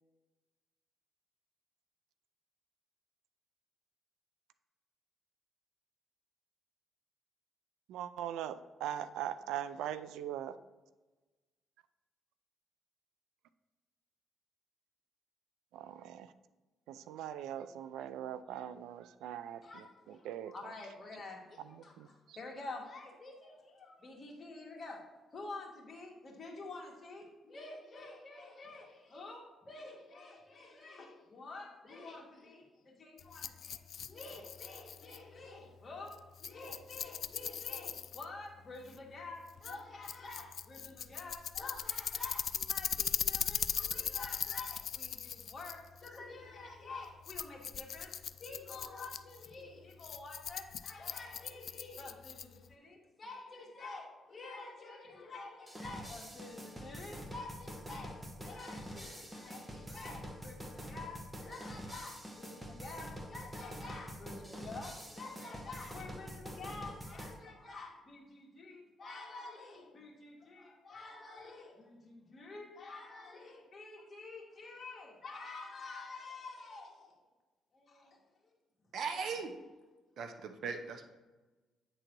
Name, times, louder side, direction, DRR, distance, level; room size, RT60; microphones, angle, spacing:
voice 1, 7.9-10.5 15.7-16.3 16.9-19.6 20.3-20.5 22.0-22.1, right 10 dB, 90° right, 13 dB, 0.3 m, -40 dB
voice 2, 19.6-25.0 25.3-33.8 34.1-48.1 48.4-77.1 77.7-78.2 78.4-78.5 79.3-79.4, left 3 dB, 35° left, -1 dB, 1.9 m, -49 dB
Rattle, 33.2-52.7, left 8 dB, 60° left, 0.3 m, -40 dB
sound 1, 55.7-67.4, equal, 15° right, 1.1 m, -46 dB
voice 3, 78.9-79.5 80.2-81.0, right 5 dB, 65° right, 7 dB, 0.8 m, -38 dB
9.0 x 3.9 x 4.5 m, 1.2 s
cardioid pair, 90°, 0 cm